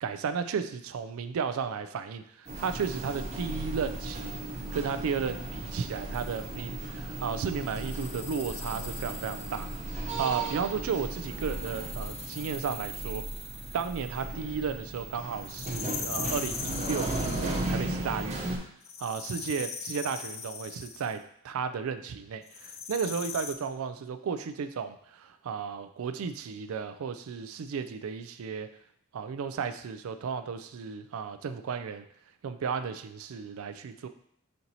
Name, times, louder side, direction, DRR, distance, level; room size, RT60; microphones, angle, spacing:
voice 1, 0.0-4.4 4.7-9.7 10.0-13.3 13.7-18.4 19.0-28.7 29.1-32.0 32.4-34.1, right 6 dB, 75° right, 10 dB, 0.4 m, -34 dB
sound 1, 2.5-18.6, right 2 dB, 35° right, 0.7 m, -36 dB
sound 2, 6.1-6.5 7.6-9.9 11.1-14.3 15.4-17.8 18.8-21.2 22.5-23.5, left 6 dB, 30° left, 0.4 m, -41 dB
4.4 x 2.7 x 4.0 m, 0.66 s
head